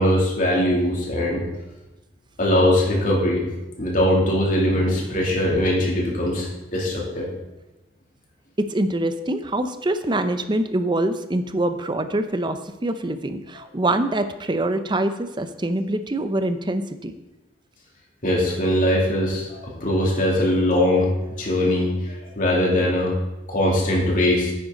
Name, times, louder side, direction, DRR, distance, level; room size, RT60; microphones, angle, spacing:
voice 1, 0.0-1.4 2.4-3.4 3.8-7.3 18.2-21.1 21.4-23.1 23.5-24.5, left 1 dB, 45° left, -3 dB, 2.8 m, -21 dB
voice 2, 8.6-17.1, right 1 dB, 25° right, 9 dB, 0.7 m, -24 dB
9.8 x 9.2 x 3.9 m, 0.99 s
head